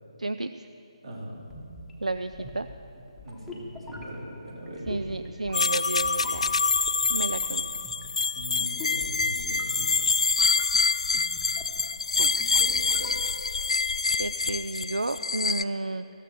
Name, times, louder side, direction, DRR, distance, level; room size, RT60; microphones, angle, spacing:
voice 1, 0.2-0.5 2.0-2.7 4.9-6.5 7.1-7.7 12.2-12.3 12.6-13.2 14.2-16.1, right 2 dB, 85° right, 10 dB, 0.4 m, -32 dB
voice 2, 1.0-1.4 3.2-5.0 8.3-10.1, equal, 55° right, -4 dB, 3.7 m, -41 dB
sound 1, 1.4-13.6, equal, ahead, 1.2 m, -44 dB
sound 2, 5.5-15.6, left 4 dB, 65° left, 0.4 m, -26 dB
20.0 x 14.0 x 3.2 m, 2.7 s
figure-of-eight pair, 150°, 4 cm